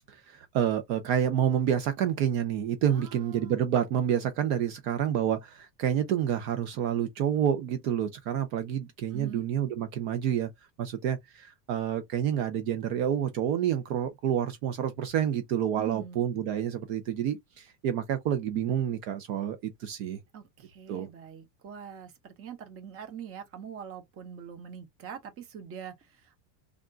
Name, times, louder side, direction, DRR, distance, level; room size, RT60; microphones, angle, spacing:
voice 1, 0.1-10.5 10.8-20.2 20.9-21.1, right 9 dB, 55° right, 0.7 m, -28 dB
voice 2, 2.9-3.7 9.1-9.4 15.8-16.2 20.3-26.4, right 8 dB, 25° right, 0.9 m, -43 dB
3.6 x 2.5 x 3.7 m
supercardioid pair, 155°, 50 cm